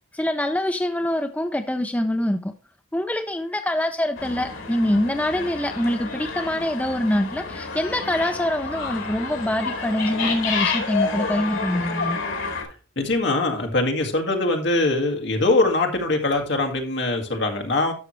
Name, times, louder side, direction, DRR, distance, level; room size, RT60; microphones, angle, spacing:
voice 1, 0.1-2.5 2.9-12.2, left 1 dB, 5° left, 6 dB, 0.4 m, -24 dB
sound 1, 4.2-12.6, left 4 dB, 85° left, 2.5 m, -29 dB
voice 2, 13.0-17.9, left 2 dB, 60° left, 3 dB, 1.8 m, -22 dB
12.0 x 6.2 x 3.1 m, 0.35 s
head